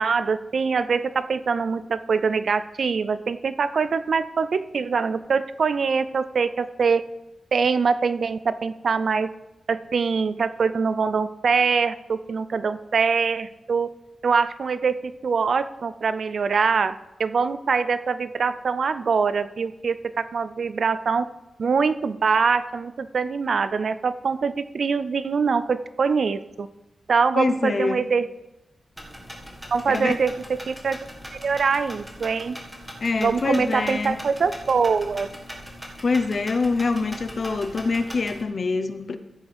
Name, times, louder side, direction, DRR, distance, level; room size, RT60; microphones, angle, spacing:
voice 1, 0.0-7.0 7.5-9.3 9.7-13.9 14.2-21.3 21.6-26.7 27.1-28.3 29.7-31.0 31.3-32.6 33.2-35.3, right 5 dB, 60° right, 13 dB, 0.4 m, -23 dB
voice 2, 27.3-28.0 29.9-30.2 33.0-34.2 36.0-39.2, left 4 dB, 45° left, 8 dB, 0.8 m, -25 dB
sound 1, 29.0-38.4, equal, 5° right, 1.7 m, -41 dB
14.5 x 7.9 x 3.5 m, 0.98 s
wide cardioid pair, 140°, 0 cm